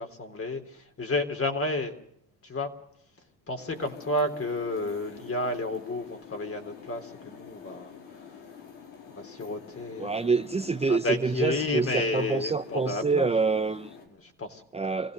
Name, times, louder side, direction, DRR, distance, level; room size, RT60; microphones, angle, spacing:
voice 1, 0.0-1.9 2.4-2.7 3.5-8.4 9.1-10.4 10.9-13.5 14.1-14.6, left 2 dB, 30° left, 3.7 m, -31 dB
sound 1, 3.6-14.1, left 7 dB, 90° left, 5.0 m, -47 dB
voice 2, 10.0-14.0 14.7-15.1, right 4 dB, 15° right, 0.8 m, -27 dB
26.0 x 16.0 x 6.7 m
supercardioid pair, 80°, 46 cm